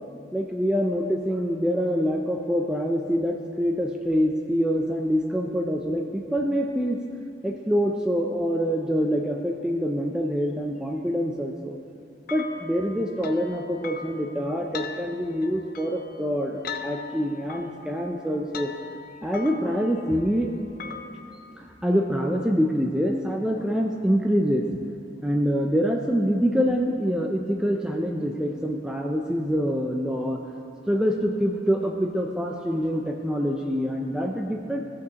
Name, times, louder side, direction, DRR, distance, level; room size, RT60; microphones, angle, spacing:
voice 1, 0.3-7.0 7.4-11.8 12.3-18.7 19.2-20.5 21.6-24.7 25.2-30.4 30.9-34.8, equal, 5° right, 1 dB, 0.4 m, -25 dB
sound 1, 12.3-21.2, left 6 dB, 55° left, 0.5 m, -40 dB
16.5 x 6.2 x 2.9 m, 2.7 s
head